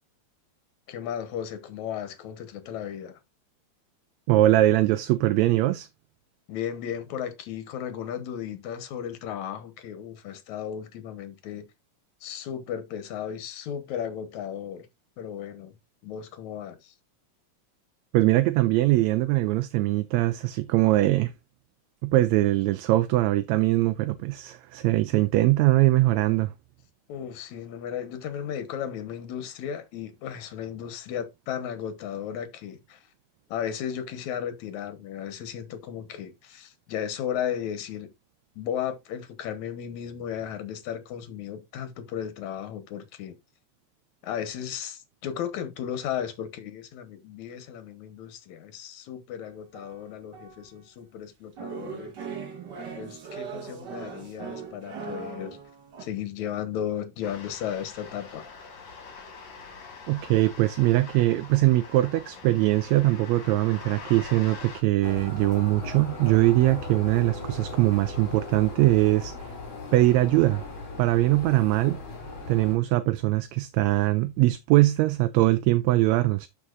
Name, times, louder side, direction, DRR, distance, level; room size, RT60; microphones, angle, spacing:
voice 1, 0.9-3.2 6.5-11.7 12.2-14.9 15.2-15.8 16.0-16.9 27.1-33.0 33.5-38.1 38.6-43.4 44.2-52.1 53.0-55.6 56.0-58.5, left 9 dB, 75° left, 2.5 m, -35 dB
voice 2, 4.3-5.9 18.1-21.3 22.0-26.5 60.1-69.3 69.9-70.6 71.0-72.0 72.5-76.5, right 17 dB, 80° right, 1.8 m, -22 dB
sound 1, 49.4-50.9 51.6-56.0, right 5 dB, 45° right, 1.6 m, -39 dB
sound 2, 57.2-64.8, left 5 dB, 60° left, 3.3 m, -44 dB
Trams in melbourne, 65.0-72.8, left 3 dB, 45° left, 3.1 m, -38 dB
11.5 x 4.9 x 2.5 m
omnidirectional pair, 3.3 m